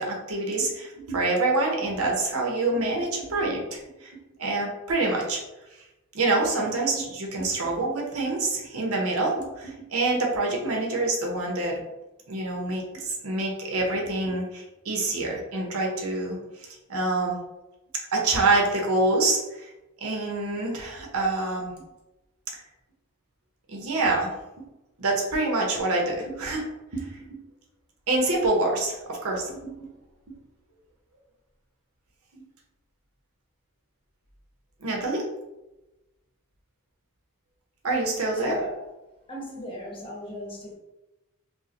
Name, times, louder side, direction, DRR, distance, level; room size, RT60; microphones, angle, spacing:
voice 1, 0.0-5.4 6.1-11.8 12.3-16.4 16.9-17.4 18.1-19.7 20.0-21.7 22.5-22.6 23.7-24.3 24.6-24.7 25.0-26.7 26.9-27.4 28.1-29.9 32.3-32.4 34.8-35.2 37.8-38.6, right 2 dB, 70° right, -1 dB, 0.9 m, -26 dB
voice 2, 38.3-38.8 39.3-40.7, equal, 25° left, -3 dB, 1.0 m, -36 dB
5.3 x 2.1 x 3.0 m, 1.0 s
head